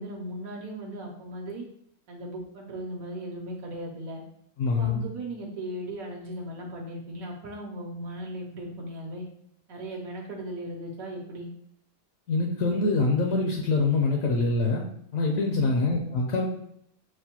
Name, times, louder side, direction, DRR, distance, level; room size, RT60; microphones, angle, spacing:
voice 1, 0.0-1.6 2.1-4.2 4.8-9.2 9.7-11.5 15.5-15.8, right 1 dB, 75° right, -1 dB, 1.1 m, -37 dB
voice 2, 4.6-5.0 12.3-14.8 15.1-16.5, left 3 dB, 75° left, 1 dB, 1.0 m, -24 dB
6.2 x 2.1 x 2.8 m, 0.71 s
omnidirectional pair, 1.6 m